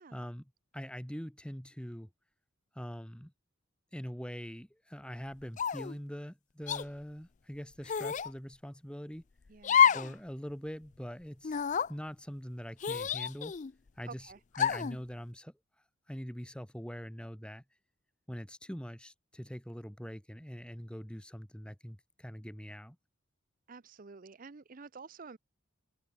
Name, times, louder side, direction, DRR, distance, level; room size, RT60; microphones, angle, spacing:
voice 1, 0.1-2.1 2.7-3.3 3.9-9.2 9.9-11.6 11.9-13.6 14.0-15.5 16.1-17.6 18.3-23.0, equal, 5° left, 1.9 m, -43 dB
sound 1, 5.6-6.0 6.7-6.8 7.9-8.3 9.6-10.1 10.5-10.6 11.4-11.9 12.8-13.7 14.5-15.0, left 8 dB, 35° left, 0.4 m, -28 dB
voice 2, 9.5-10.0 14.1-14.4 23.7-25.4, right 4 dB, 40° right, 0.6 m, -50 dB
head